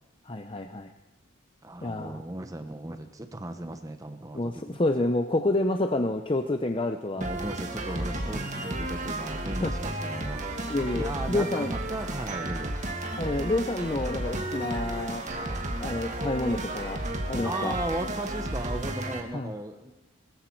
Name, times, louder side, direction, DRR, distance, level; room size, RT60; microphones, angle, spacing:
voice 1, 0.3-0.9 1.8-2.2 4.3-7.3 9.6-9.7 10.7-11.7 13.2-15.3 15.8-17.0 17.3-17.7 19.3-19.5, left 2 dB, 25° left, 6 dB, 0.7 m, -28 dB
voice 2, 1.6-4.9 7.2-10.4 10.9-12.8 17.4-19.9, right 1 dB, 15° right, 7 dB, 0.9 m, -36 dB
sound 1, 7.2-19.2, right 1 dB, 35° right, 2.0 m, -33 dB
20.5 x 14.5 x 4.6 m, 0.97 s
head